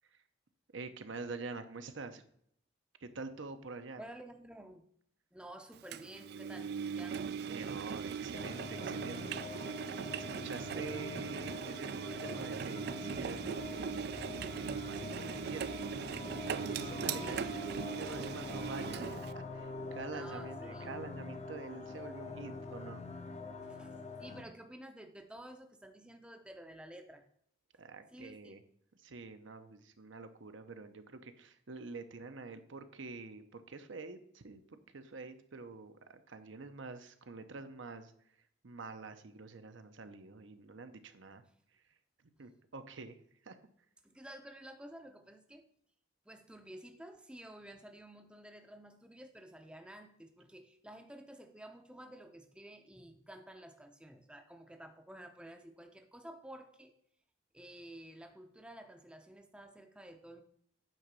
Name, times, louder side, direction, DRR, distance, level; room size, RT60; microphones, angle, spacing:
voice 1, 0.7-2.2 3.0-4.0 7.5-15.8 16.7-17.6 18.0-23.0 27.8-28.6 29.0-38.1 38.6-41.4 42.4-43.2 43.4-43.6, right 4 dB, 70° right, 8 dB, 0.8 m, -47 dB
voice 2, 4.0-4.8 5.3-7.3 17.1-18.0 20.0-21.0 23.6-27.3 27.7-27.8 28.1-28.6 44.0-45.7 46.3-56.9 57.5-60.4, right 1 dB, 5° right, 5 dB, 0.6 m, -52 dB
Engine, 5.9-19.3, right 6 dB, 50° right, 0.3 m, -39 dB
sound 1, 8.3-24.4, left 3 dB, 35° left, 0.7 m, -45 dB
sound 2, 13.1-18.7, equal, 70° left, 0.9 m, -56 dB
9.1 x 3.8 x 6.8 m, 0.67 s
head